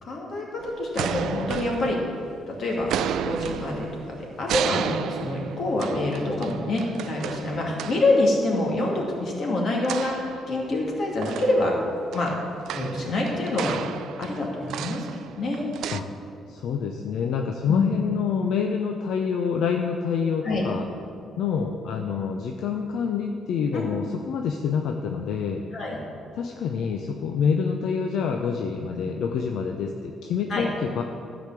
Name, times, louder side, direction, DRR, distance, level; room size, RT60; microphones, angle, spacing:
voice 1, 0.0-2.0 2.5-2.9 3.2-11.7 12.1-12.3 12.7-13.8 14.2-15.1 15.3-15.7 17.7-18.0 20.4-20.6 23.7-23.9 25.7-26.0 30.5-30.6, left 2 dB, 55° left, -2 dB, 2.5 m, -26 dB
sound 1, 0.6-2.4 2.8-8.2 9.8-10.9 11.2-16.0, right 9 dB, 80° right, 0.4 m, -33 dB
voice 2, 16.5-20.9 21.4-25.6 26.4-31.0, left 6 dB, 80° left, 3 dB, 0.6 m, -27 dB
11.5 x 5.1 x 7.5 m, 2.4 s
cardioid pair, 90°, 0 cm